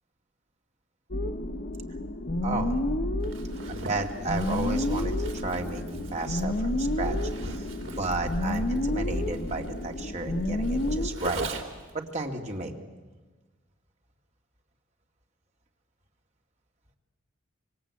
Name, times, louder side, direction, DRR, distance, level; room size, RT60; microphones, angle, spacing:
sound 1, 1.1-11.1, left 1 dB, 45° left, 1.2 m, -30 dB
voice 1, 2.4-2.8 3.7-7.2 7.5-7.7 8.0-11.4 11.9-12.7, right 3 dB, 35° right, 3 dB, 2.5 m, -33 dB
Zipper (clothing), 3.2-11.9, right 2 dB, 65° right, 3.1 m, -40 dB
25.5 x 25.5 x 8.5 m, 1.3 s
head